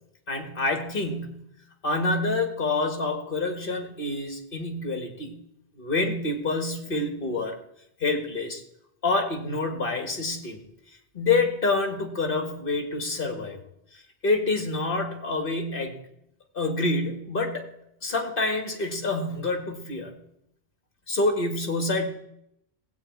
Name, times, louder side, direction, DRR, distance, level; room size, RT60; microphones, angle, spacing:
voice 1, 0.3-1.5 1.8-5.4 5.8-7.6 8.0-8.6 9.0-10.6 11.1-13.6 14.2-16.0 16.5-17.7 18.0-20.2 21.1-22.1, left 3 dB, 55° left, 4 dB, 2.0 m, -27 dB
17.5 x 8.3 x 4.6 m, 0.78 s
omnidirectional pair, 1.1 m